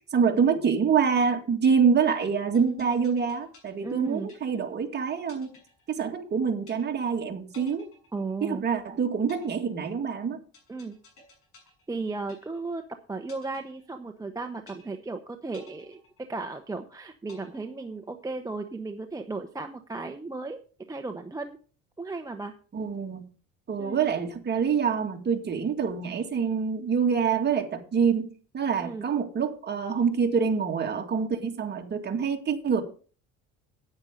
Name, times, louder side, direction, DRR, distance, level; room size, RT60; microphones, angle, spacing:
voice 1, 0.1-5.5 5.9-7.9 8.4-10.4 22.7-23.3 23.7-32.8, right 6 dB, 35° right, 2.1 m, -26 dB
sound 1, 2.5-4.8 5.3-6.3 6.7-7.2 7.5-8.8 9.3-12.8 13.3-14.3 14.7-15.2 15.5-16.8 17.3-18.3, left 3 dB, 50° left, 7.2 m, -55 dB
voice 2, 3.8-4.3 8.1-8.6 10.7-11.0 11.9-12.8 13.1-16.0 16.3-20.6 20.9-21.6 22.0-22.5 23.8-24.1 28.8-29.1, right 3 dB, 10° right, 0.8 m, -35 dB
9.8 x 9.6 x 5.0 m
cardioid pair, 120°, 30 cm